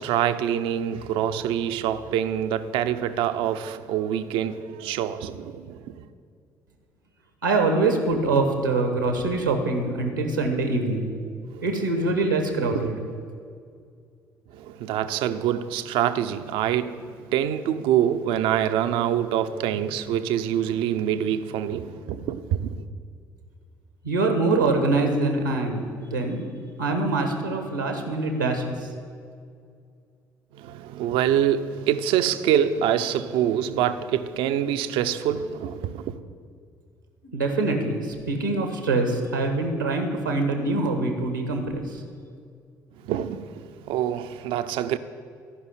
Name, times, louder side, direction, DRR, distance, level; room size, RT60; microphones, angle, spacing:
voice 1, 0.0-6.0 11.5-11.7 12.7-12.9 14.5-22.8 30.5-36.2 43.0-45.0, right 10 dB, 60° right, 0.7 m, -25 dB
voice 2, 7.4-11.1 11.6-13.0 24.0-26.4 26.8-28.9 37.3-42.0, right 3 dB, 90° right, 1.3 m, -24 dB
14.5 x 5.6 x 9.7 m
figure-of-eight pair, 50°, 10 cm